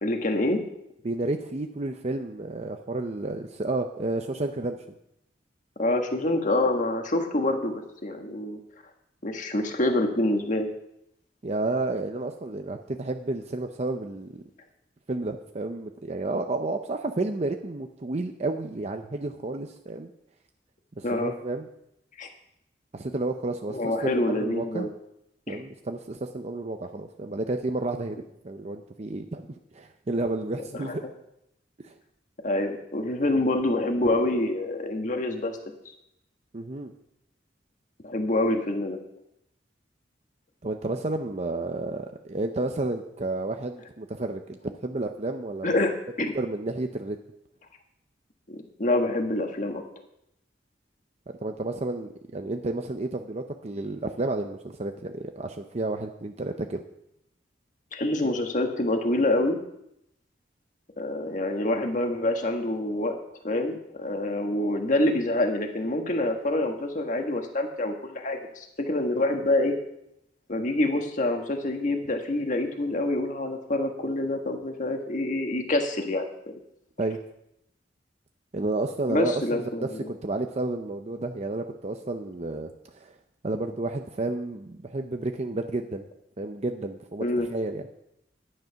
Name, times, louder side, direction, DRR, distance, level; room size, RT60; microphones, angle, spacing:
voice 1, 0.0-0.6 5.8-8.6 9.2-10.7 21.0-21.3 22.2-22.3 23.7-24.9 25.5-25.6 30.7-30.9 32.4-35.7 38.0-39.0 45.6-45.9 46.2-46.3 48.5-49.8 57.9-59.6 61.0-63.2 63.4-69.7 70.5-76.6 79.1-80.1 87.2-87.5, left 1 dB, 45° left, 4 dB, 1.5 m, -26 dB
voice 2, 1.0-4.8 11.4-14.4 15.1-20.1 21.0-21.7 22.9-24.9 25.5-31.0 31.8-31.9 36.5-36.9 40.6-45.8 46.3-47.2 51.4-56.8 77.0-77.2 78.5-83.1 83.4-86.0 86.4-87.8, right 2 dB, 40° right, 5 dB, 0.6 m, -31 dB
11.0 x 9.7 x 5.8 m, 0.79 s
head